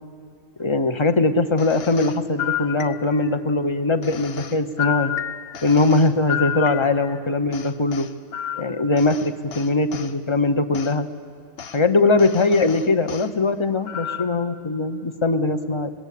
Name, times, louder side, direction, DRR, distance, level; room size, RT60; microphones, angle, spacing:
voice 1, 0.6-5.1 5.6-8.1 8.6-11.1 11.7-15.9, left 3 dB, 25° left, 9 dB, 1.0 m, -21 dB
sound 1, 1.6-3.3 4.0-7.2 7.5-10.1 10.7-10.9 11.6-11.8 12.2-13.3 13.9-14.5, left 10 dB, 60° left, 1.0 m, -31 dB
27.5 x 21.5 x 8.6 m, 2.3 s
omnidirectional pair, 1.2 m